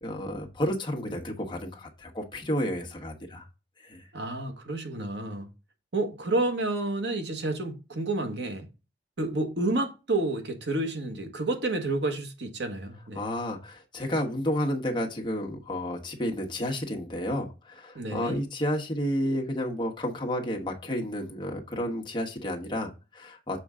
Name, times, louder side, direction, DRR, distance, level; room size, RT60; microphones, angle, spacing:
voice 1, 0.0-3.4 3.8-4.0 13.1-23.6, equal, 25° left, 1.3 m, -31 dB
voice 2, 4.1-5.5 5.9-8.7 9.2-13.2 17.9-18.4, right 2 dB, 70° right, 1.4 m, -30 dB
7.1 x 4.6 x 3.6 m
head